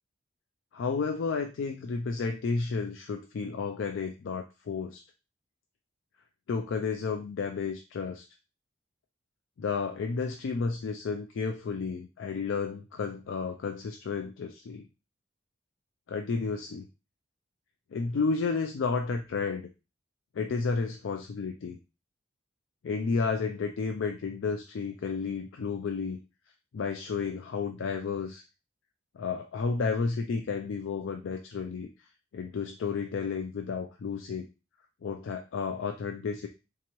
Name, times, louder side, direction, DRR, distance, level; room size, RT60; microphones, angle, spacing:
voice 1, 0.7-5.0 6.5-8.2 9.6-14.9 16.1-16.9 17.9-19.7 20.3-21.8 22.8-26.2 26.7-28.4 29.1-31.9 32.3-34.5 35.0-36.5, left 5 dB, 70° left, 4 dB, 0.4 m, -32 dB
3.4 x 2.9 x 2.9 m, 0.29 s
head